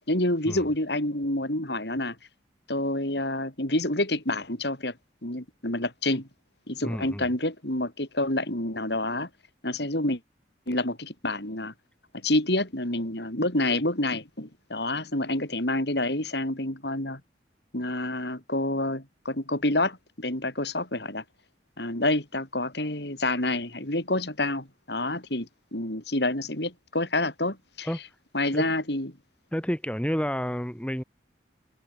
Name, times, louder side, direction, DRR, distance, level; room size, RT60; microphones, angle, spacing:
voice 1, 0.1-2.2 2.7-5.0 5.2-6.3 6.7-9.3 9.6-10.2 10.7-11.7 12.1-17.2 17.7-21.2 21.8-27.9 28.3-29.1, left 1 dB, 65° left, 5.3 m, -28 dB
voice 2, 6.8-7.3 27.8-28.0 28.5-28.7 29.5-31.0, equal, 5° left, 2.6 m, -30 dB
head